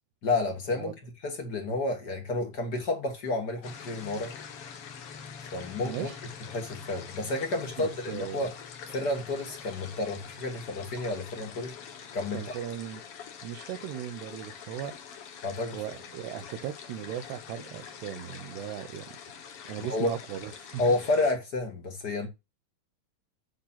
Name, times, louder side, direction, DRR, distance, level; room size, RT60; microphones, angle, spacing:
voice 1, 0.2-0.9 1.2-4.3 5.5-6.1 6.5-8.5 8.9-11.7 12.1-12.5 15.4-15.8 19.8-20.1 20.8-22.3, left 2 dB, 40° left, 1.6 m, -30 dB
sound 1, 3.6-21.3, left 7 dB, 85° left, 1.2 m, -45 dB
voice 2, 5.9-6.2 7.8-8.5 12.3-13.0 13.4-15.0 15.7-20.8, right 10 dB, 85° right, 3.0 m, -38 dB
9.5 x 3.9 x 5.7 m
omnidirectional pair, 4.7 m